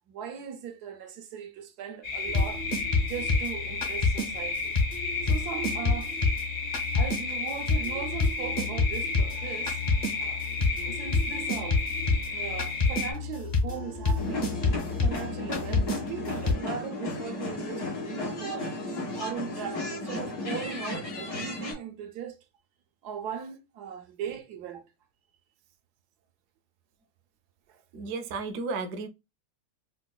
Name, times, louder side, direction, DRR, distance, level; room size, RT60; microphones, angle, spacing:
voice 1, 0.1-2.6 3.0-4.8 5.2-6.1 6.9-9.8 10.2-11.8 12.3-14.5 14.9-18.8 19.2-22.4 23.0-24.9 27.7-27.8, right 8 dB, 85° right, 1.2 m, -39 dB
sound 1, 2.0-13.1, left 4 dB, 60° left, 1.8 m, -33 dB
sound 2, 2.3-4.3 4.8-16.5, left 3 dB, 40° left, 0.8 m, -28 dB
sound 3, 14.2-21.7, left 2 dB, 85° left, 2.2 m, -34 dB
voice 2, 27.9-29.1, right 4 dB, 70° right, 0.9 m, -33 dB
4.7 x 2.1 x 2.2 m
omnidirectional pair, 1.7 m